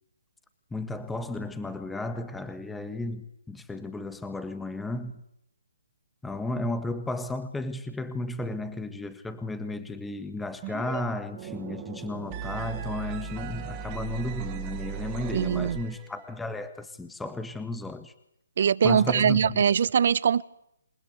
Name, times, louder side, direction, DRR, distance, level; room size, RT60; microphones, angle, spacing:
voice 1, 0.7-5.1 6.2-18.1 18.8-19.6, left 2 dB, 5° left, 1.5 m, -34 dB
sound 1, 10.6-11.0 11.3-16.2, right 8 dB, 25° right, 2.9 m, -37 dB
voice 2, 15.3-15.8 18.6-20.4, right 7 dB, 55° right, 1.0 m, -22 dB
28.5 x 20.5 x 8.2 m
hypercardioid pair, 145°, 0 cm